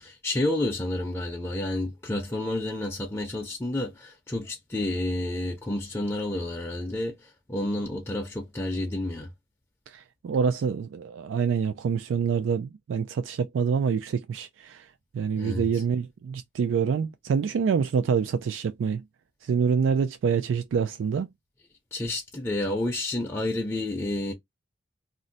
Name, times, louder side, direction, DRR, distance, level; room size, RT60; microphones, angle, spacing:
voice 1, 0.0-9.3 15.3-15.8 21.9-24.3, left 1 dB, 15° left, 0.5 m, -30 dB
voice 2, 9.9-14.9 15.1-19.0 19.4-21.3, right 6 dB, 90° right, 0.3 m, -26 dB
2.5 x 2.1 x 3.9 m
head